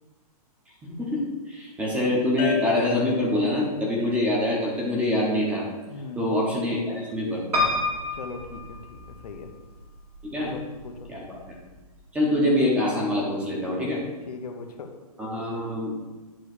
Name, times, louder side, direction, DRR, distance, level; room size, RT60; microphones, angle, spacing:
voice 1, 0.8-5.7 6.2-7.4 10.2-10.5 11.1-11.6 12.1-14.0 15.2-15.9, left 1 dB, 5° right, -3 dB, 1.1 m, -25 dB
sound 1, 2.4-5.8, left 7 dB, 30° left, 0.8 m, -35 dB
voice 2, 5.9-6.4 8.1-9.5 10.5-11.1 13.8-14.9, left 4 dB, 85° left, 4 dB, 1.2 m, -39 dB
Piano, 7.5-9.5 10.1-10.8 11.2-11.3 11.5-11.6, left 2 dB, 85° right, 2.7 m, -28 dB
9.2 x 3.3 x 6.5 m, 1.2 s
hypercardioid pair, 170°, 20 cm